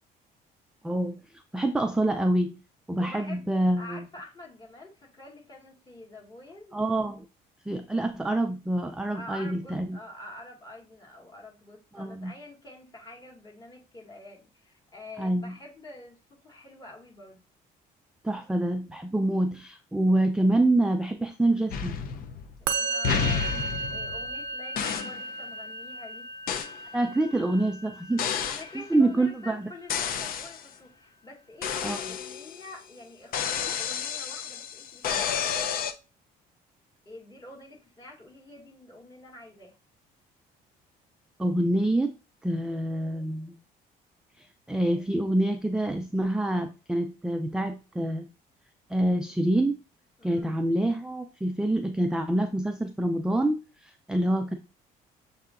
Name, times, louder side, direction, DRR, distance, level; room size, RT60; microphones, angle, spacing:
voice 1, 0.8-1.2 1.5-2.6 2.9-4.0 6.7-7.3 7.7-10.0 11.9-12.3 15.2-15.6 18.2-22.0 26.9-28.6 28.9-29.7 31.8-32.0 41.4-42.1 42.4-43.5 44.4-48.3 48.9-49.8 50.2-54.6, right 1 dB, 5° right, 6 dB, 0.4 m, -26 dB
voice 2, 3.0-3.5 3.7-6.8 9.1-17.4 22.8-26.3 28.5-35.5 37.1-39.8 50.2-50.5, left 1 dB, 25° left, -1 dB, 1.8 m, -47 dB
sound 1, 21.7-22.6 23.0-24.4 24.8-25.2 26.5-26.8 28.2-28.7 29.9-30.7 31.6-32.7 33.3-35.9, left 7 dB, 60° left, 0.5 m, -30 dB
Musical instrument, 22.7-29.9, right 3 dB, 70° right, 0.5 m, -35 dB
6.7 x 2.7 x 2.5 m, 0.30 s
cardioid pair, 110°, 17 cm